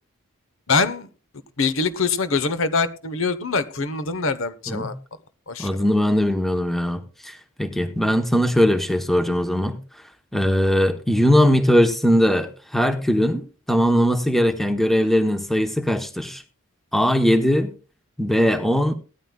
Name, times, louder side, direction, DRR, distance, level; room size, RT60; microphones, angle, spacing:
voice 1, 0.7-1.1 1.6-4.9 5.5-5.7, left 4 dB, 65° left, 13 dB, 1.0 m, -23 dB
voice 2, 5.6-9.8 10.3-16.4 16.9-17.7 18.2-18.9, equal, ahead, 6 dB, 1.0 m, -20 dB
18.0 x 13.0 x 2.3 m, 0.36 s
head